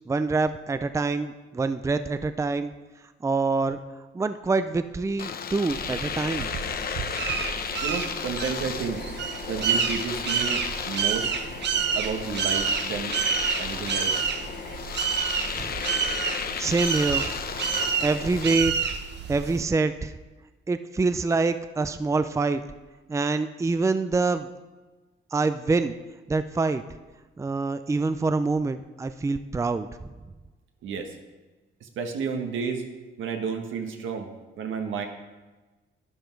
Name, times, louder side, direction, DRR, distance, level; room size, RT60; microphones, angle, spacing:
voice 1, 0.1-2.7 3.2-3.8 4.1-6.5 15.6-15.7 16.6-17.3 18.0-18.9 19.3-20.1 20.7-22.6 23.1-24.5 25.3-25.9 26.3-26.8 27.4-29.9, right 3 dB, 15° right, 11 dB, 0.5 m, -25 dB
Domestic sounds home sounds, 5.2-18.6, left 6 dB, 50° left, 0.9 m, -34 dB
sound 1, 5.7-19.6, right 7 dB, 60° right, 1.0 m, -29 dB
voice 2, 7.8-9.0 9.5-11.3 11.9-13.2 13.6-14.1 30.8-31.1 31.8-32.9 33.2-34.3 34.6-35.0, right 5 dB, 80° right, 4 dB, 1.5 m, -31 dB
12.0 x 9.9 x 4.6 m, 1.2 s
cardioid pair, 90°, 20 cm